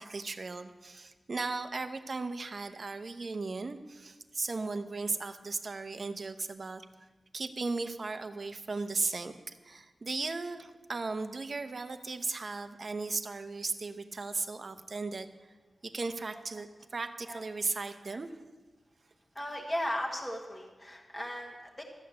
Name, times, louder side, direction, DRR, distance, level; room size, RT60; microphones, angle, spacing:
voice 1, 0.0-6.8 7.3-9.3 9.6-15.3 15.8-16.7 16.9-18.3, right 3 dB, 45° right, 8 dB, 0.8 m, -36 dB
voice 2, 16.3-16.6 17.3-17.4 18.1-18.2 19.3-21.8, equal, 15° left, 0 dB, 1.2 m, -37 dB
13.5 x 8.7 x 6.7 m, 1.3 s
wide cardioid pair, 145°, 0 cm